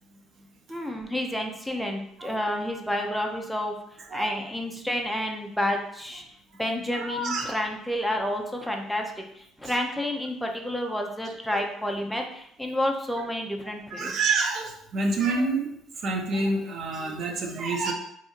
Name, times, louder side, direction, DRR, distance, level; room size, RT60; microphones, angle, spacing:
voice 1, 0.7-3.7 4.1-6.2 6.6-14.1, left 1 dB, ahead, 1 dB, 0.5 m, -30 dB
voice 2, 6.9-7.6 9.6-9.7 11.5-11.6 13.9-15.7 16.0-17.9, right 3 dB, 55° right, 2 dB, 0.5 m, -28 dB
2.8 x 2.5 x 2.4 m, 0.72 s
supercardioid pair, 75°, 0 cm